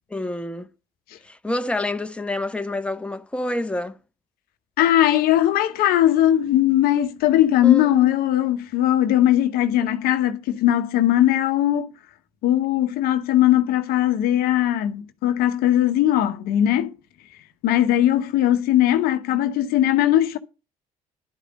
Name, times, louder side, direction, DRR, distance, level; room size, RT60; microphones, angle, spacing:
voice 1, 0.1-0.7 1.2-4.0 7.6-8.1, left 2 dB, 5° left, 1.2 m, -28 dB
voice 2, 4.8-11.9 12.4-16.9 17.6-20.4, left 12 dB, 55° left, 1.0 m, -19 dB
11.5 x 5.0 x 7.7 m
figure-of-eight pair, 50°, 18 cm